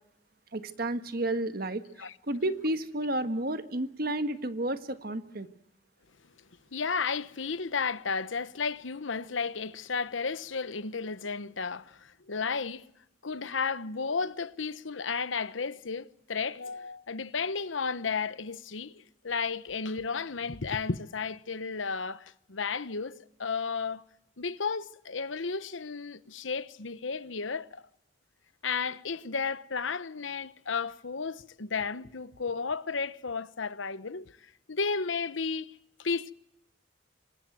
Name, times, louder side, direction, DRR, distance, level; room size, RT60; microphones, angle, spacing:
voice 1, 0.5-5.5, right 1 dB, 50° right, 1.5 m, -31 dB
voice 2, 6.7-12.9 13.2-24.1 24.4-27.8 28.6-34.3 34.7-35.7 36.0-36.3, left 5 dB, 90° left, 1.0 m, -33 dB
26.0 x 19.5 x 9.3 m
head